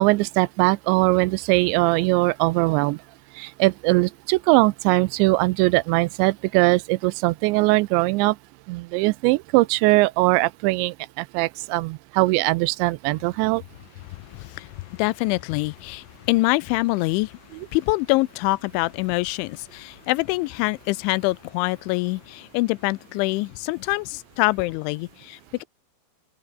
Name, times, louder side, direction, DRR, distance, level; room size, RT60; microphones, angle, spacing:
voice 1, 0.0-3.0 3.4-8.4 8.7-13.6, right 22 dB, 85° right, 2.8 m, -21 dB
voice 2, 14.0-25.6, left 22 dB, 90° left, 3.1 m, -25 dB
open air
omnidirectional pair, 5.3 m